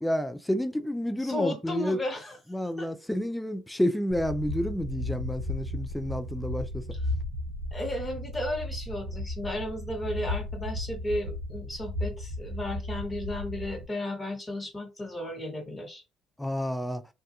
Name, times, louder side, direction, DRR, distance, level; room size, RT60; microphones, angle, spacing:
voice 1, 0.0-2.0 2.5-6.8 16.4-17.0, equal, 5° left, 0.4 m, -30 dB
voice 2, 1.2-2.4 2.8-2.9 7.7-16.0, left 1 dB, 25° left, 1.2 m, -34 dB
sound 1, 4.1-13.9, left 1 dB, 65° right, 0.6 m, -35 dB
2.4 x 2.1 x 2.8 m
hypercardioid pair, 60°, 0 cm